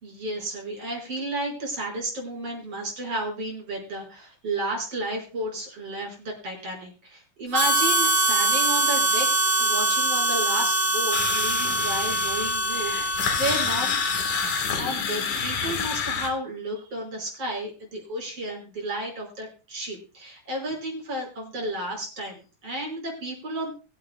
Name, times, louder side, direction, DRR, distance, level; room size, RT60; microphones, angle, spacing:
voice 1, 0.0-9.3 9.6-13.9 14.8-23.7, right 1 dB, 50° right, 0 dB, 6.3 m, -32 dB
Harmonica, 7.5-14.8, right 2 dB, 35° right, 1.4 m, -24 dB
sound 1, 11.1-16.3, left 6 dB, 75° left, 3.0 m, -29 dB
24.0 x 8.4 x 2.3 m, 0.33 s
omnidirectional pair, 3.5 m